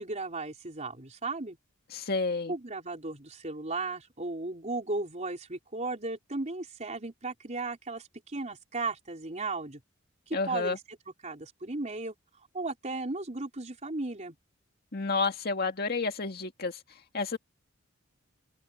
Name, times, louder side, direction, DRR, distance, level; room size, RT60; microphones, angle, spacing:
voice 1, 0.0-1.6 2.5-9.8 10.3-10.8 11.2-12.1 12.5-14.4, right 3 dB, 35° right, 4.0 m, -35 dB
voice 2, 1.9-2.5 10.3-10.8 14.9-16.8 17.1-17.4, left 4 dB, 50° left, 2.0 m, -30 dB
head